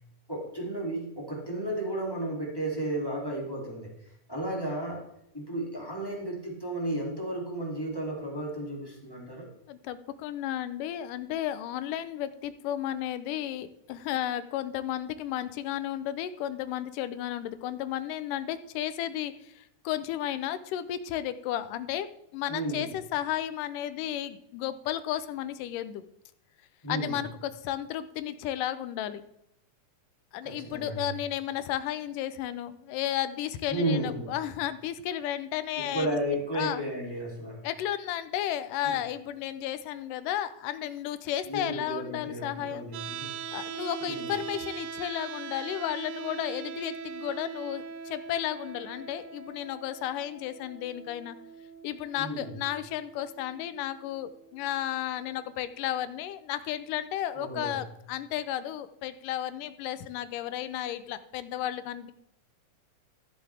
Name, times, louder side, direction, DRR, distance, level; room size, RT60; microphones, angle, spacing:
voice 1, 0.3-3.9 4.3-5.1 5.3-9.5 22.5-22.9 26.8-27.2 30.4-31.1 33.7-34.3 35.7-37.6 38.8-39.0 41.5-43.4 44.1-44.3 52.2-52.5 57.3-57.8, right 1 dB, 10° left, -3 dB, 2.3 m, -33 dB
voice 2, 9.7-26.0 26.9-29.2 30.3-36.2 36.5-36.8 37.6-42.9 43.5-51.4 51.8-62.1, left 12 dB, 90° left, 13 dB, 2.2 m, -33 dB
sound 1, 42.9-54.9, right 6 dB, 75° right, 1.6 m, -41 dB
14.5 x 7.8 x 3.5 m, 0.77 s
omnidirectional pair, 3.8 m